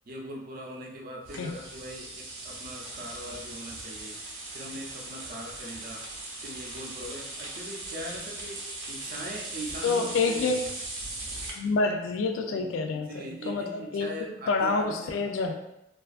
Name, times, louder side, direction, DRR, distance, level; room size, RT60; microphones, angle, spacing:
voice 1, 0.1-4.2 4.5-6.0 6.4-10.6 12.5-15.4, right 1 dB, 50° right, -1 dB, 0.5 m, -41 dB
sound 1, 1.2-11.5, right 2 dB, 90° right, 0.6 m, -39 dB
voice 2, 9.8-10.6 11.6-14.1 14.5-15.5, left 4 dB, 90° left, 5 dB, 0.3 m, -27 dB
2.5 x 2.3 x 2.3 m, 0.88 s
head